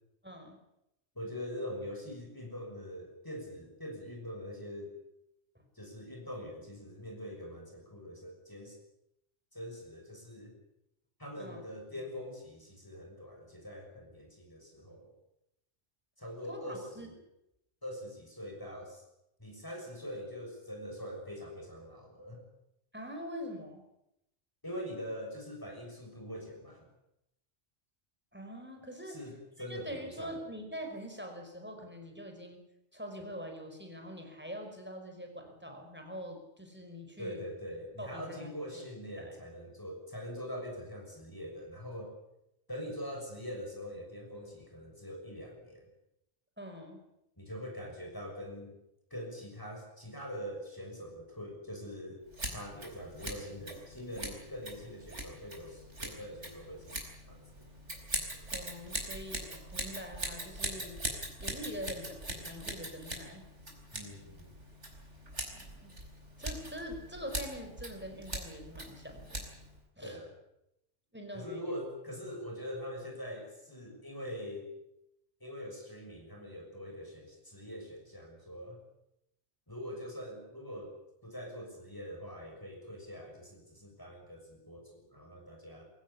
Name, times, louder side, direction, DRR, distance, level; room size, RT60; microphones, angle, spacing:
voice 1, 0.2-0.6 5.6-5.7 11.4-11.6 16.5-17.1 22.9-23.8 28.3-29.2 29.7-32.6 32.9-37.4 38.0-38.5 39.2-39.4 46.6-47.0 58.5-61.0 61.4-63.4 65.4-65.9 66.4-69.4 70.0-70.2 71.1-71.7, equal, 10° right, 4 dB, 5.1 m, -44 dB
voice 2, 1.1-4.9 5.7-8.8 9.5-10.6 11.2-15.1 16.2-17.2 17.8-19.0 19.4-22.4 24.6-26.9 29.1-30.4 37.2-42.1 42.7-45.9 47.4-48.8 49.1-52.2 52.5-57.7 63.9-64.5 70.0-70.3 71.3-74.7 75.4-78.8 79.7-80.9 81.2-85.8, equal, 15° left, 1 dB, 6.4 m, -43 dB
Scissors, 52.3-69.8, right 1 dB, 75° right, 5.1 m, -42 dB
23.5 x 16.0 x 9.8 m, 0.84 s
omnidirectional pair, 1.2 m